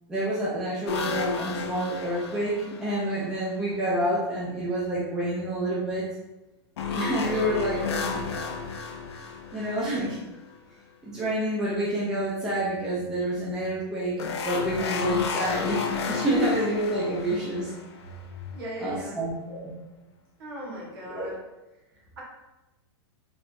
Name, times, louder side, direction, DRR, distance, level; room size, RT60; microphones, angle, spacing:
voice 1, 0.1-6.0 7.0-8.5 9.5-10.2 11.0-15.8 16.1-17.7 18.8-19.7 21.1-21.3, right 1 dB, 5° right, -8 dB, 0.3 m, -28 dB
sound 1, 0.9-3.4 6.8-10.6 14.2-18.5, left 6 dB, 70° left, 0.5 m, -32 dB
voice 2, 18.5-19.2 20.4-21.4, equal, 55° right, -4 dB, 1.3 m, -38 dB
3.2 x 2.7 x 2.5 m, 1.0 s
supercardioid pair, 170°, 14 cm